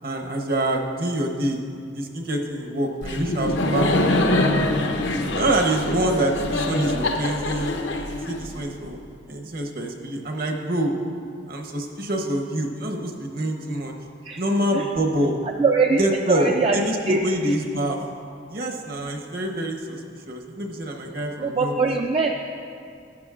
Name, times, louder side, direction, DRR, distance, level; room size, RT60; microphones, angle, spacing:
voice 1, 0.0-1.6 1.9-4.7 5.3-9.0 9.3-10.9 11.5-13.9 14.3-15.3 16.0-18.0 18.5-20.0 20.3-22.0, right 1 dB, 50° right, 2 dB, 0.9 m, -26 dB
Laughter, 3.0-8.8, left 2 dB, 75° left, 0.7 m, -24 dB
voice 2, 15.6-16.0 16.3-17.6 21.4-22.5, right 4 dB, 30° right, 2 dB, 0.3 m, -23 dB
12.0 x 9.7 x 2.4 m, 2.4 s
head